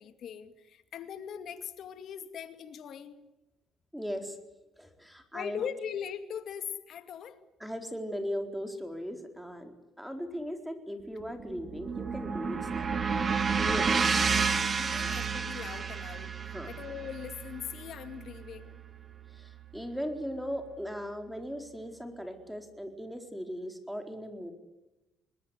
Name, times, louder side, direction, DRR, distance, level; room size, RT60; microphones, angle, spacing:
voice 1, 0.0-3.2 5.3-7.4 14.3-16.4 16.7-18.8, left 8 dB, 60° left, 9 dB, 2.3 m, -40 dB
voice 2, 3.9-4.4 4.8-5.6 7.6-13.3 13.6-14.4 16.5-16.7 19.3-24.5, equal, ahead, 6 dB, 4.2 m, -38 dB
sound 1, 11.2-19.5, right 5 dB, 35° right, 2.5 m, -31 dB
25.0 x 21.0 x 9.7 m, 0.96 s
cardioid pair, 90°, 0 cm